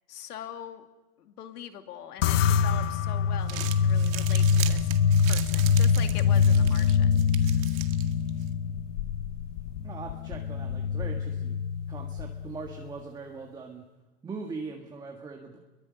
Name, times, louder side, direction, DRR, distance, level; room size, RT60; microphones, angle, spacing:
voice 1, 0.1-0.9 1.2-4.9 5.2-7.1 7.4-7.7, left 10 dB, 75° left, 6 dB, 2.5 m, -42 dB
sound 1, 2.2-12.8, left 6 dB, 50° left, 1.1 m, -25 dB
Crumpling crinkling, 3.3-8.5, right 13 dB, 60° right, 2.0 m, -40 dB
voice 2, 9.8-11.6 11.9-13.9 14.2-15.6, right 4 dB, 10° right, 2 dB, 1.7 m, -40 dB
29.0 x 22.5 x 6.5 m, 1.1 s
supercardioid pair, 150°, 46 cm